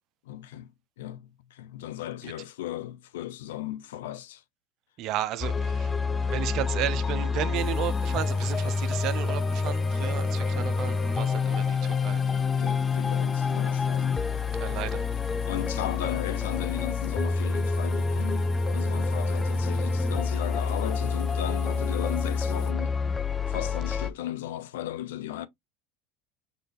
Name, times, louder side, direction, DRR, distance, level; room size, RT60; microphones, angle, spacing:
voice 1, 0.3-0.7 1.0-4.4 12.6-14.3 15.5-23.0 23.5-25.5, left 12 dB, 85° left, 0.5 m, -36 dB
voice 2, 5.0-5.9 6.2-12.2 14.6-15.1, right 13 dB, 55° right, 0.5 m, -33 dB
sound 1, 5.4-24.1, left 4 dB, 20° left, 0.5 m, -27 dB
sound 2, 7.5-22.7, left 6 dB, 65° left, 1.4 m, -49 dB
4.0 x 2.5 x 3.3 m
supercardioid pair, 100°, 0 cm